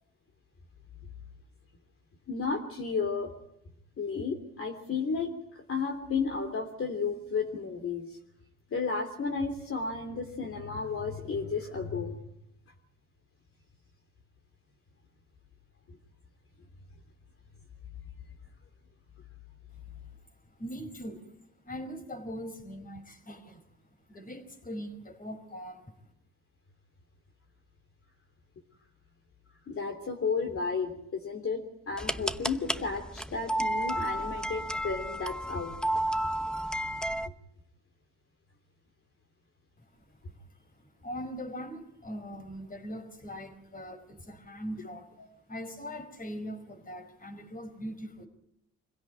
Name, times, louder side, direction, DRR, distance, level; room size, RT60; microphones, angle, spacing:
voice 1, 2.3-3.3 4.0-5.3 5.7-8.2 8.7-12.2 29.7-35.7, left 5 dB, 45° left, 3 dB, 3.3 m, -33 dB
voice 2, 20.5-21.3 21.6-23.6 24.1-25.9 39.8-45.1 45.5-48.3, equal, 30° left, 8 dB, 4.9 m, -41 dB
sound 1, 32.0-37.3, right 1 dB, 5° left, 0.9 m, -32 dB
25.5 x 16.5 x 9.0 m, 0.80 s
cardioid pair, 90°, 30 cm